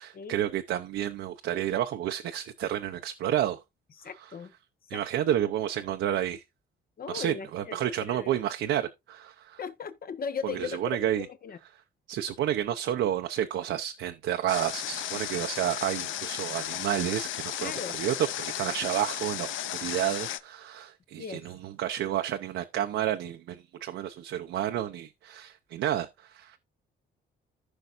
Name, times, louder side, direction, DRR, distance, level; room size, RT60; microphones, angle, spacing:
voice 1, 0.0-3.6 4.2-4.3 4.9-6.4 7.1-9.6 10.4-11.3 12.1-26.6, right 11 dB, 80° right, 0.7 m, -30 dB
voice 2, 4.0-4.5 4.9-5.0 7.0-8.4 9.6-10.8 11.2-11.6 17.6-18.0 21.2-21.4, left 6 dB, 50° left, 1.2 m, -38 dB
Water, 14.5-20.4, left 12 dB, 80° left, 0.7 m, -35 dB
15.0 x 5.4 x 2.5 m
cardioid pair, 90°, 20 cm